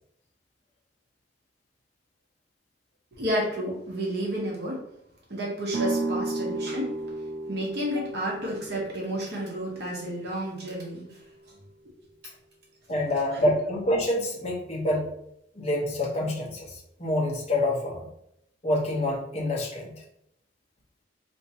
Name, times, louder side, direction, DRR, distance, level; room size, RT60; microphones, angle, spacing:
voice 1, 3.1-4.8 5.3-7.0 7.5-11.2 13.3-13.5, equal, 60° right, -4 dB, 0.9 m, -31 dB
sound 1, 5.7-11.5, right 2 dB, 80° right, 0.5 m, -34 dB
voice 2, 12.9-15.1 15.5-16.7 17.0-18.0 18.6-19.9, left 1 dB, 35° left, -4 dB, 0.9 m, -26 dB
4.3 x 2.6 x 2.7 m, 0.76 s
head